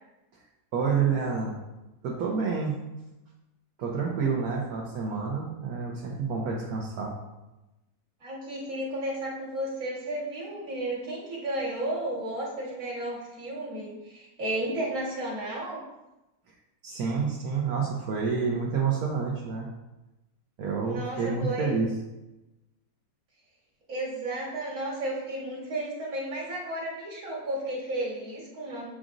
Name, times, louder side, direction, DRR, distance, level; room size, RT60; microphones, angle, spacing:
voice 1, 0.7-1.6 2.0-2.7 3.8-7.1 16.8-19.7 20.6-21.9, right 5 dB, 65° right, -2 dB, 1.2 m, -28 dB
voice 2, 8.2-15.8 20.8-21.8 23.9-28.8, right 1 dB, 45° right, -4 dB, 1.9 m, -33 dB
7.4 x 5.0 x 2.6 m, 1.0 s
omnidirectional pair, 1.9 m